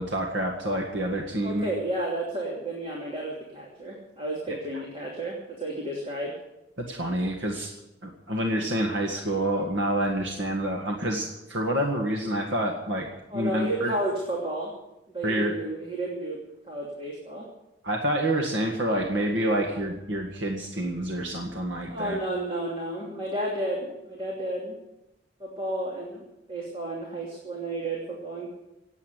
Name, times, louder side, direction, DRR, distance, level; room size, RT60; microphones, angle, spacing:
voice 1, 0.0-1.7 4.5-4.6 6.8-7.7 8.0-13.1 13.3-13.9 15.2-15.5 17.8-22.2, right 1 dB, 85° right, 1 dB, 1.9 m, -28 dB
voice 2, 1.4-6.3 13.3-14.7 15.1-16.4 16.7-17.5 21.9-24.7 25.4-26.2 26.5-28.5, right 1 dB, 30° right, -3 dB, 2.9 m, -32 dB
18.5 x 8.4 x 8.2 m, 0.92 s
head